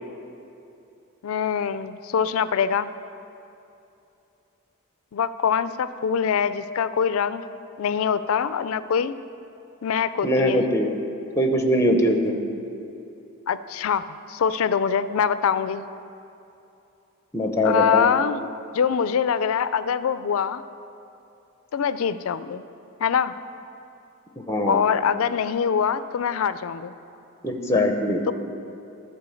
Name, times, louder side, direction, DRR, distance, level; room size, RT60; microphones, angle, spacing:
voice 1, 1.2-2.9 5.1-9.2 9.8-10.7 13.5-14.0 14.3-15.9 17.6-18.4 18.7-20.6 21.7-22.6 23.0-23.3 24.7-26.9 28.3-28.4, left 7 dB, 70° left, 14 dB, 0.4 m, -24 dB
voice 2, 10.2-10.9 11.4-12.3 17.3-18.1 24.5-24.8 27.4-28.2, equal, 10° left, 4 dB, 0.6 m, -21 dB
12.5 x 4.4 x 7.0 m, 2.8 s
head